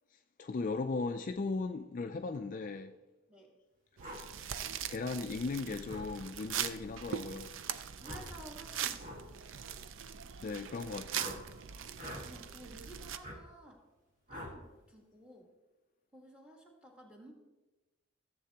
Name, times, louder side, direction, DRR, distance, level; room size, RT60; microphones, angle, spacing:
voice 1, 0.4-2.9 4.8-7.5 10.4-11.5, left 3 dB, 40° left, 0.3 m, -37 dB
sound 1, 4.0-4.2 5.9-6.1 8.0-8.3 9.0-9.2 11.1-11.4 11.9-12.3 13.2-13.4 14.3-14.6, equal, 40° right, 1.7 m, -44 dB
sound 2, 4.0-13.2, right 9 dB, 70° right, 0.5 m, -41 dB
voice 2, 8.0-9.3 12.0-13.8 14.3-15.5 16.1-17.3, right 1 dB, 5° right, 1.4 m, -53 dB
14.5 x 7.5 x 2.9 m
head